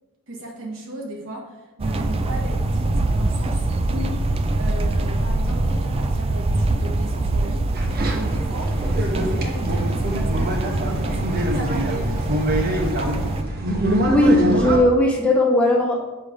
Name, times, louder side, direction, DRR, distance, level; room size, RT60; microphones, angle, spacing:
voice 1, 0.3-4.2 4.6-7.7 8.0-8.8 9.1-12.2, right 1 dB, 65° right, -1 dB, 1.4 m, -36 dB
sound 1, 1.8-13.4, right 2 dB, 25° right, 0.3 m, -24 dB
sound 2, 7.7-14.8, right 1 dB, 45° right, 0.9 m, -24 dB
voice 2, 14.1-16.1, left 1 dB, 5° left, -4 dB, 1.3 m, -18 dB
6.4 x 3.4 x 5.0 m, 1.1 s
head